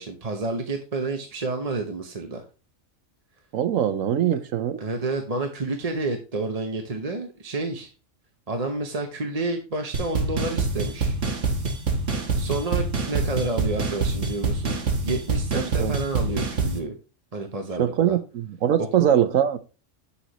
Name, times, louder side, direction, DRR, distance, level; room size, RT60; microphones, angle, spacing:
voice 1, 0.0-2.4 4.8-7.9 8.5-11.2 12.4-16.9 17.3-18.2, right 3 dB, 35° right, 0.9 m, -30 dB
voice 2, 3.5-4.8 15.5-15.9 17.8-19.6, right 10 dB, 85° right, 1.2 m, -22 dB
sound 1, 9.9-16.8, right 3 dB, 65° right, 1.7 m, -26 dB
8.4 x 7.1 x 3.0 m
omnidirectional pair, 1.4 m